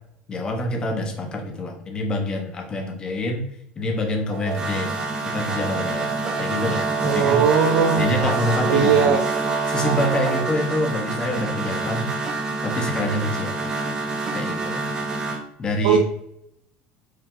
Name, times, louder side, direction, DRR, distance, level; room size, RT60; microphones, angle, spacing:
voice 1, 0.3-3.5 3.8-7.5 7.9-9.1 9.7-12.1 12.6-13.6 14.3-14.8 15.6-16.0, left 1 dB, 20° left, 2 dB, 0.8 m, -26 dB
sound 1, 4.3-15.4, right 3 dB, 20° right, 0.8 m, -26 dB
voice 2, 7.0-8.0 8.7-9.2 15.8-16.0, right 7 dB, 85° right, 2 dB, 0.5 m, -18 dB
4.6 x 2.6 x 3.8 m, 0.78 s
cardioid pair, 155°, 4 cm